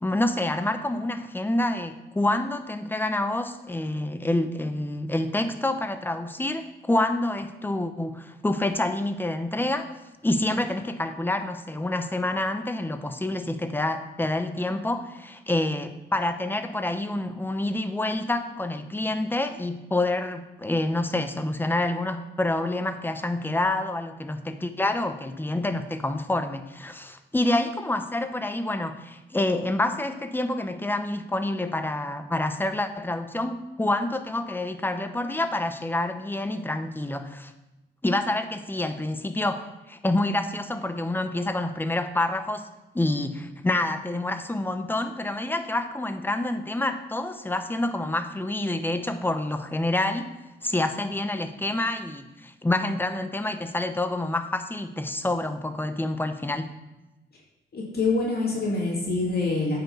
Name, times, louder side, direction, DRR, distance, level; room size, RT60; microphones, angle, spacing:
voice 1, 0.0-9.9 10.2-37.5 38.0-42.7 42.9-50.3 50.6-56.7, left 2 dB, 10° left, 9 dB, 0.8 m, -27 dB
voice 2, 57.7-59.8, left 3 dB, 55° left, -3 dB, 2.5 m, -25 dB
8.8 x 5.8 x 5.4 m, 1.0 s
cardioid pair, 85°, 20 cm